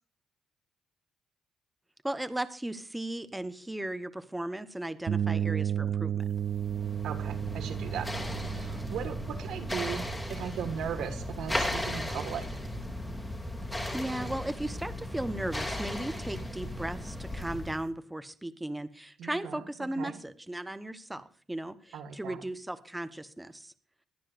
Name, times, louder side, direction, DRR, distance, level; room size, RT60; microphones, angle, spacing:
voice 1, 2.0-6.3 13.7-23.7, right 1 dB, 10° right, 13 dB, 1.0 m, -36 dB
sound 1, 5.1-12.8, right 9 dB, 60° right, 0.4 m, -34 dB
sound 2, 6.4-17.9, left 1 dB, 5° left, 2.6 m, -36 dB
voice 2, 7.0-8.1 8.4-12.6 19.2-20.2 21.9-22.4, right 8 dB, 75° right, 9 dB, 1.6 m, -38 dB
22.0 x 9.7 x 2.5 m, 0.40 s
cardioid pair, 90°, 0 cm